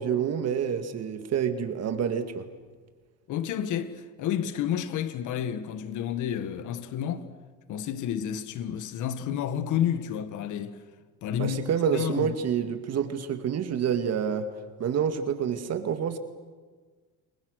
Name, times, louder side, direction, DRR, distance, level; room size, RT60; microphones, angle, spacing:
voice 1, 0.0-2.5 11.4-14.5 14.8-16.2, right 8 dB, 50° right, 2.0 m, -28 dB
voice 2, 3.3-7.3 7.7-10.8 11.2-12.4, left 9 dB, 60° left, 1.6 m, -30 dB
29.5 x 22.0 x 6.5 m
cardioid pair, 110°, 34 cm